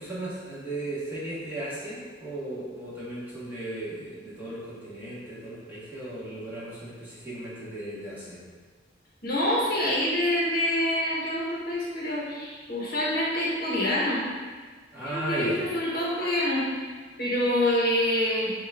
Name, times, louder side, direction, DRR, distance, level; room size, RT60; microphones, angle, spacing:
voice 1, 0.0-8.4 14.9-15.6, right 1 dB, 10° right, -10 dB, 1.6 m, -35 dB
voice 2, 9.2-14.2 15.0-16.6 17.2-18.5, left 1 dB, 45° left, -6 dB, 1.6 m, -26 dB
8.7 x 3.1 x 3.6 m, 1.5 s
head